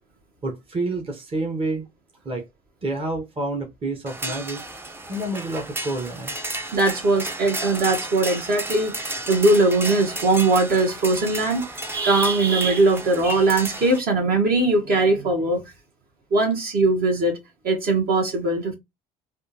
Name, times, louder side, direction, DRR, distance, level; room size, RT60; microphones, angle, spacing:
voice 1, 0.4-1.9 2.2-2.5 2.8-4.6 5.1-6.3, right 2 dB, 30° right, 1.1 m, -28 dB
sound 1, 4.1-14.0, right 1 dB, 10° right, 0.6 m, -33 dB
voice 2, 6.7-11.7 11.9-15.6 16.3-17.4 17.6-18.7, right 2 dB, 55° right, 1.5 m, -20 dB
3.4 x 2.5 x 2.8 m
hypercardioid pair, 65°, 19 cm